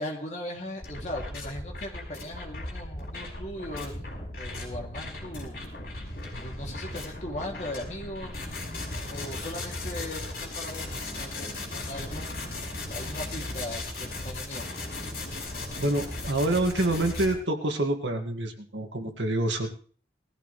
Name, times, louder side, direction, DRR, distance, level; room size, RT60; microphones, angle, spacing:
voice 1, 0.0-5.6 6.3-8.4 9.1-13.8 14.1-14.9, left 1 dB, 40° left, 0 dB, 3.0 m, -39 dB
sound 1, 0.8-17.3, left 2 dB, 55° left, 5.6 m, -37 dB
voice 2, 15.8-19.7, right 1 dB, 90° right, 4 dB, 2.2 m, -27 dB
19.5 x 14.5 x 3.4 m, 0.43 s
head